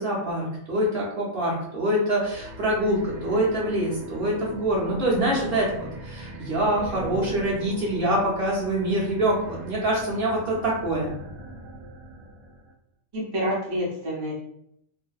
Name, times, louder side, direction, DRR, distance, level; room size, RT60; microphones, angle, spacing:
voice 1, 0.0-11.1, right 1 dB, 50° right, -5 dB, 0.8 m, -25 dB
sound 1, 2.1-12.7, right 1 dB, 85° right, 1.1 m, -40 dB
voice 2, 13.1-14.3, equal, 35° right, -6 dB, 0.4 m, -28 dB
2.6 x 2.1 x 2.3 m, 0.73 s
omnidirectional pair, 1.5 m